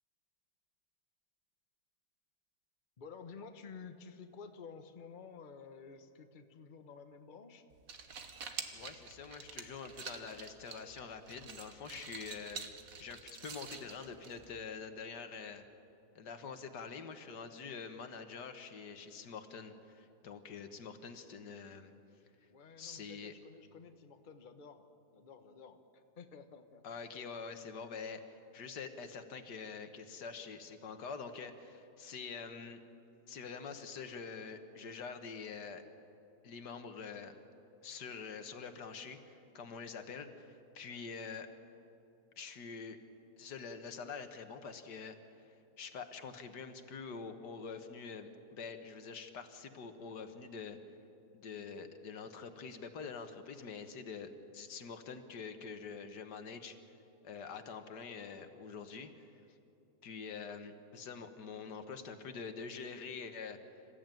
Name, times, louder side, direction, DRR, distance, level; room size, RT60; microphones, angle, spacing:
voice 1, 3.0-7.6 22.5-26.8, left 5 dB, 35° left, 7 dB, 1.1 m, -52 dB
sound 1, 7.7-14.7, right 5 dB, 55° right, 1.7 m, -48 dB
voice 2, 8.7-12.6 13.0-15.6 16.2-21.9 22.8-23.3 26.8-32.8 33.3-35.8 36.4-37.4 37.8-41.5 42.4-43.0 43.4-45.5 45.8-50.8 51.3-56.8 57.2-59.3 60.0-63.6, left 5 dB, 85° left, 7 dB, 1.9 m, -46 dB
27.0 x 14.5 x 9.1 m, 2.8 s
omnidirectional pair, 1.7 m